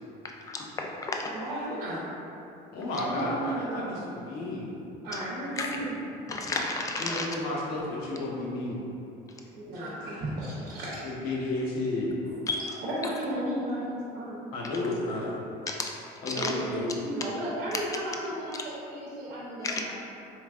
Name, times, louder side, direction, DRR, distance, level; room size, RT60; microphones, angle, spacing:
voice 1, 0.5-1.3 5.6-5.8 6.3-7.3 12.5-12.8 15.7-16.0 16.3-16.5 19.6-19.8, left 3 dB, 20° left, 1 dB, 0.3 m, -32 dB
voice 2, 1.3-2.0 3.0-4.1 5.0-6.0 9.5-11.3 12.2-12.4 12.8-14.5 14.8-14.9 16.3-19.9, right 1 dB, 65° right, -6 dB, 0.8 m, -34 dB
voice 3, 2.7-4.7 7.0-8.8 11.0-12.2 14.5-15.3 16.2-16.8, left 2 dB, 70° left, -4 dB, 0.9 m, -32 dB
4.3 x 3.2 x 2.4 m, 2.8 s
cardioid pair, 145°, 17 cm